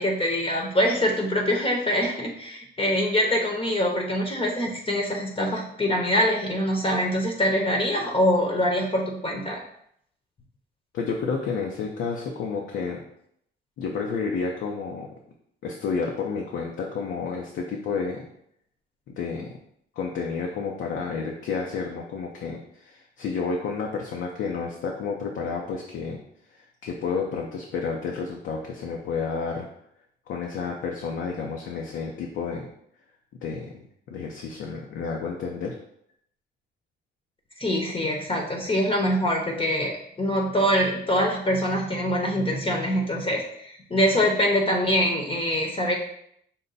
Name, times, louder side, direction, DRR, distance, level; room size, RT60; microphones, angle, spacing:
voice 1, 0.0-9.6 37.6-45.9, equal, 25° left, 0 dB, 0.8 m, -24 dB
voice 2, 10.9-13.0 13.8-15.1 15.6-18.3 19.2-19.5 20.0-26.2 26.8-29.7 30.3-32.7 33.4-33.8 34.1-35.8, left 5 dB, 75° left, -1 dB, 0.7 m, -30 dB
5.5 x 2.2 x 4.0 m, 0.71 s
cardioid pair, 90°, 20 cm